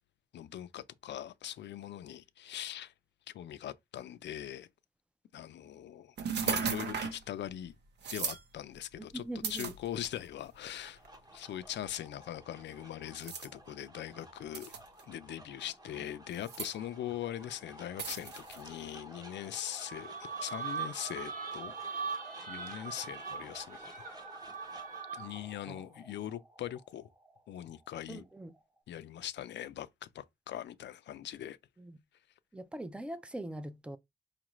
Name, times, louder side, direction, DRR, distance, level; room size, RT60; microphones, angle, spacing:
voice 1, 0.3-2.9 3.3-4.7 5.3-6.1 6.4-7.7 8.1-9.2 9.5-11.0 11.3-14.7 15.1-20.2 20.4-22.0 22.5-24.1 25.1-27.1 27.5-28.2 28.9-31.6, left 11 dB, 85° left, 0.4 m, -41 dB
sound 1, 6.2-7.2 8.0-8.4 9.4-10.3 11.0-11.2 13.2-13.5 14.5-15.0 16.3-16.7 18.0-18.6, right 6 dB, 75° right, 0.7 m, -35 dB
voice 2, 9.0-9.7 25.7-25.8 28.1-28.5 31.8-32.0 32.5-34.0, right 1 dB, 5° right, 0.4 m, -42 dB
sound 2, 10.5-28.8, right 1 dB, 20° right, 0.9 m, -53 dB
sound 3, 19.8-25.5, right 6 dB, 50° right, 0.9 m, -41 dB
5.0 x 2.4 x 3.0 m
wide cardioid pair, 150°, 18 cm